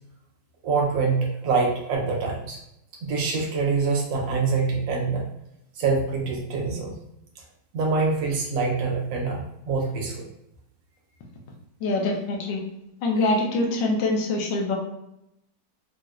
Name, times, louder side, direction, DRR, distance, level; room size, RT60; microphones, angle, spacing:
voice 1, 0.6-2.6 3.0-5.3 5.8-7.0 7.7-10.2, right 4 dB, 80° right, -1 dB, 1.4 m, -25 dB
voice 2, 11.8-12.6 13.0-14.7, left 2 dB, 75° left, 0 dB, 1.3 m, -24 dB
4.1 x 2.1 x 2.3 m, 0.83 s
omnidirectional pair, 2.0 m